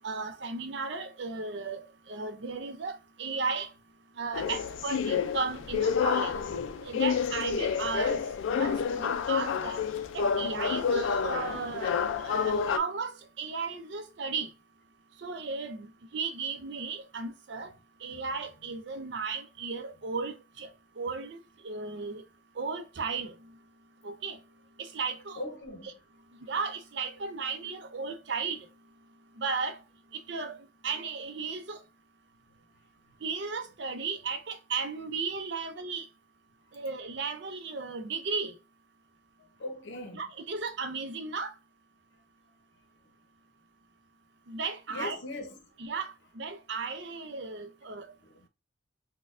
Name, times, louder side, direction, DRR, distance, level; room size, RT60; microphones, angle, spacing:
voice 1, 0.0-3.7 4.2-6.3 6.8-8.2 8.5-9.9 10.1-14.5 15.2-15.9 16.1-17.7 18.0-20.7 21.0-22.2 22.6-23.3 24.0-24.4 24.8-25.4 25.8-25.9 26.5-28.6 29.4-29.8 30.1-30.6 30.8-31.8 33.2-36.1 36.7-38.6 40.1-41.5 44.5-45.2 45.8-48.1, right 4 dB, 65° right, 0.5 m, -35 dB
sound 1, 4.3-12.8, left 6 dB, 90° left, 0.4 m, -29 dB
voice 2, 25.4-25.9 39.6-40.2 44.9-45.6, left 2 dB, 70° left, 0.8 m, -39 dB
4.2 x 2.2 x 2.5 m
head